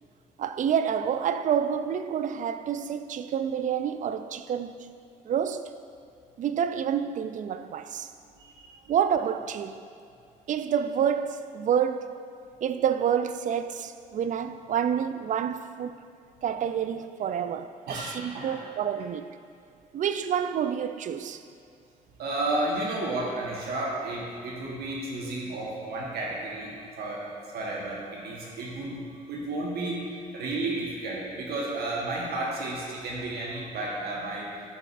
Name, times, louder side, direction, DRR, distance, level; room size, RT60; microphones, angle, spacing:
voice 1, 0.4-5.0 5.2-5.8 6.4-8.1 8.9-9.8 10.5-12.2 12.6-16.0 16.4-19.3 19.9-21.4, right 8 dB, 50° right, 0.4 m, -28 dB
voice 2, 8.4-8.8 17.9-18.6 22.2-27.3 27.5-34.5, right 2 dB, 65° right, 1.3 m, -32 dB
7.8 x 6.5 x 2.6 m
hypercardioid pair, 55°, 17 cm